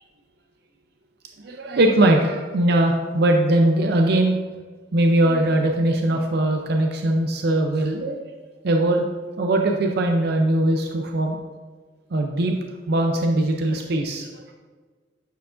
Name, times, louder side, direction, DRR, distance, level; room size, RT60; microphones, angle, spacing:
voice 1, 1.4-4.4 4.9-8.2 8.6-9.1 9.4-11.4 12.1-12.6 12.9-14.4, right 1 dB, 60° right, 3 dB, 0.5 m, -20 dB
9.1 x 4.6 x 2.5 m, 1.4 s
head